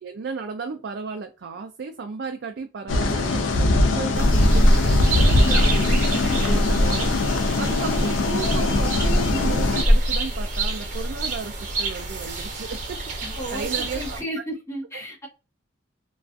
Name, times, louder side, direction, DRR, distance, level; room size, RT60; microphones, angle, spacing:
voice 1, 0.0-7.1 7.4-14.2, right 5 dB, 60° right, 0.4 m, -34 dB
sound 1, 2.9-9.8, left 2 dB, 85° left, 0.4 m, -22 dB
sound 2, 4.1-14.2, right 1 dB, 40° right, 0.7 m, -24 dB
voice 2, 13.2-15.3, right 1 dB, 15° left, 1.0 m, -33 dB
2.4 x 2.4 x 2.3 m
head